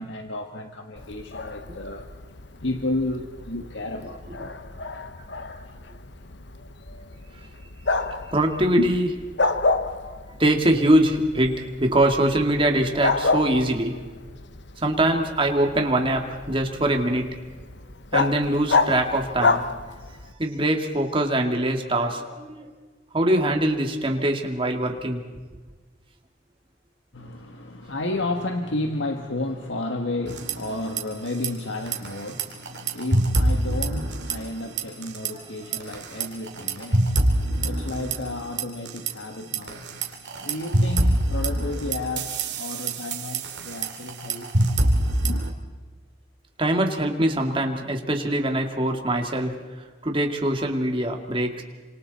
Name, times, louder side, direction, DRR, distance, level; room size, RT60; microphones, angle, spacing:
voice 1, 0.0-2.1 2.6-4.2 4.8-4.9 5.3-5.8 8.8-8.9 27.1-44.5 45.2-45.4, left 2 dB, 85° left, 4 dB, 1.5 m, -32 dB
Bark, 1.0-20.3, left 3 dB, 70° left, 1.1 m, -30 dB
voice 2, 8.3-9.1 10.4-14.0 14.8-17.4 18.1-19.6 20.4-22.7 23.1-25.2 35.3-35.4 46.6-49.6 50.0-51.6, right 1 dB, 30° right, 3 dB, 2.3 m, -23 dB
sound 1, 30.3-31.0 31.3-31.5 31.9-34.5 34.8-35.3 35.7-39.1 39.5-45.5, right 1 dB, 70° right, 2.7 m, -24 dB
29.0 x 26.5 x 4.3 m, 1.4 s
head